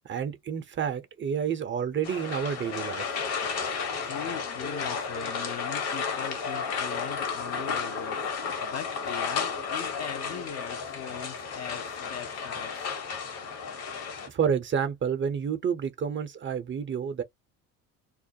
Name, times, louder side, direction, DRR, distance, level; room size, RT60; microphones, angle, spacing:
voice 1, 0.0-3.2 14.3-17.2, right 7 dB, 25° right, 0.5 m, -29 dB
sound 1, 2.0-14.3, left 5 dB, 55° left, 1.1 m, -33 dB
voice 2, 4.0-12.9, left 8 dB, 35° left, 0.5 m, -40 dB
2.3 x 2.0 x 2.7 m
hypercardioid pair, 70°, 45 cm